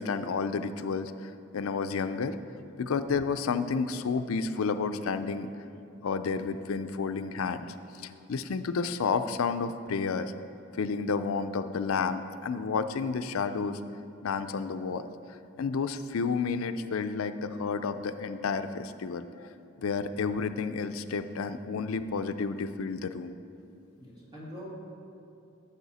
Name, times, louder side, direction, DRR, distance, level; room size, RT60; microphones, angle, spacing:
voice 1, 0.0-2.4 2.8-5.5 6.0-7.6 8.0-10.3 10.8-13.8 14.2-15.1 15.6-19.3 19.8-23.3, left 5 dB, 90° left, 10 dB, 0.4 m, -31 dB
voice 2, 24.0-24.7, equal, 20° right, -6 dB, 2.2 m, -44 dB
14.0 x 6.9 x 4.1 m, 2.7 s
head